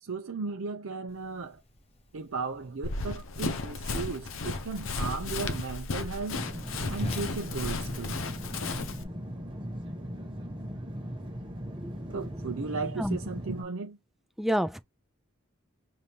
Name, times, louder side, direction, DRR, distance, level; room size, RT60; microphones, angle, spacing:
voice 1, 0.0-1.6 2.1-6.4 6.9-8.2 12.1-14.0, right 4 dB, 90° right, 0.6 m, -36 dB
Whoosh swoosh swish, 1.1-8.8, left 1 dB, 30° left, 1.0 m, -45 dB
Run, 2.8-9.0, left 3 dB, 75° left, 0.8 m, -34 dB
sound 1, 6.3-13.6, equal, 25° right, 1.0 m, -38 dB
voice 2, 14.4-14.8, equal, ahead, 0.3 m, -28 dB
5.1 x 2.8 x 3.0 m
head